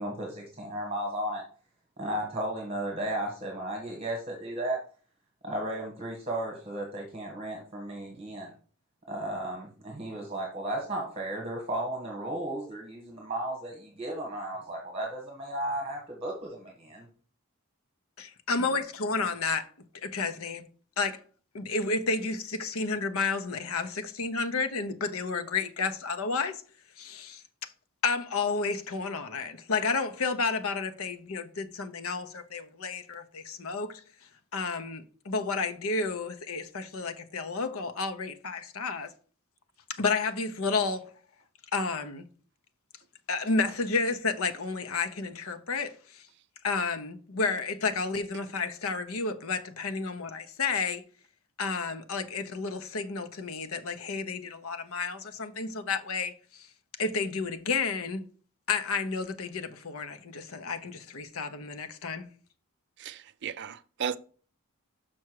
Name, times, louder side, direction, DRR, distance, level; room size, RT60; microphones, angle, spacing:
voice 1, 0.0-1.4 2.0-4.8 5.4-8.5 9.1-17.1, right 1 dB, 25° right, 1.5 m, -34 dB
voice 2, 18.2-19.7 20.0-20.6 21.0-21.2 21.5-26.6 27.0-27.4 28.0-34.0 34.5-39.1 39.9-41.0 41.7-42.2 43.3-46.2 46.6-51.0 51.6-56.7 57.0-58.2 58.7-62.3, left 4 dB, 70° left, 0.8 m, -31 dB
voice 3, 63.0-64.2, right 7 dB, 50° right, 0.4 m, -35 dB
6.1 x 5.9 x 4.6 m
head